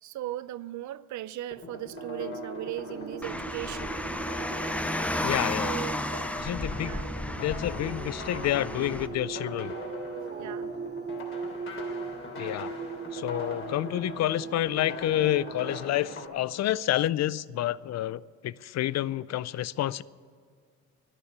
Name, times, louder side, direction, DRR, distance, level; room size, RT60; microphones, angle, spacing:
voice 1, 0.0-3.9 5.6-6.0 6.8-7.1 10.2-10.7, right 14 dB, 75° right, 0.6 m, -38 dB
sound 1, 1.5-16.3, left 3 dB, 45° left, 3.2 m, -42 dB
sound 2, 1.9-15.8, right 5 dB, 35° right, 0.8 m, -40 dB
Car, 3.2-9.1, left 1 dB, 5° left, 0.7 m, -33 dB
voice 2, 5.2-5.8 6.4-7.0 7.4-9.7 12.4-12.7 13.1-20.0, left 13 dB, 60° left, 0.5 m, -29 dB
12.5 x 10.0 x 9.5 m
cardioid pair, 90°, 30 cm